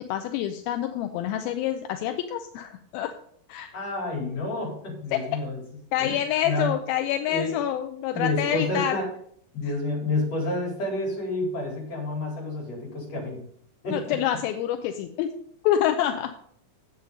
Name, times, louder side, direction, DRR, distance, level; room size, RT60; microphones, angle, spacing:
voice 1, 0.0-3.1 3.5-3.7 5.1-5.4 5.9-9.0 13.9-15.3 15.6-16.3, left 11 dB, 80° left, 7 dB, 2.4 m, -27 dB
voice 2, 3.7-5.6 6.0-6.7 7.3-7.5 8.1-9.1 9.5-13.4 13.8-14.2, left 2 dB, 40° left, -2 dB, 5.5 m, -29 dB
9.8 x 8.1 x 5.2 m, 0.63 s
omnidirectional pair, 4.4 m